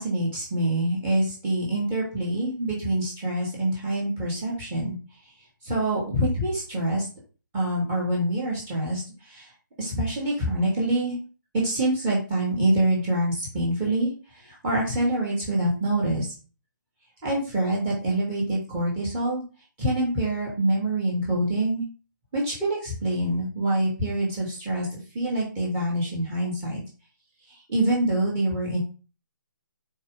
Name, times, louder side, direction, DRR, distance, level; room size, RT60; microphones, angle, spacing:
voice 1, 0.0-4.9 5.6-7.1 7.5-9.5 9.8-11.2 11.5-16.3 17.2-19.4 19.8-21.8 22.3-26.8 27.5-28.8, right 1 dB, 20° right, -5 dB, 3.2 m, -26 dB
9.0 x 4.0 x 3.8 m, 0.35 s
figure-of-eight pair, 150°, 11 cm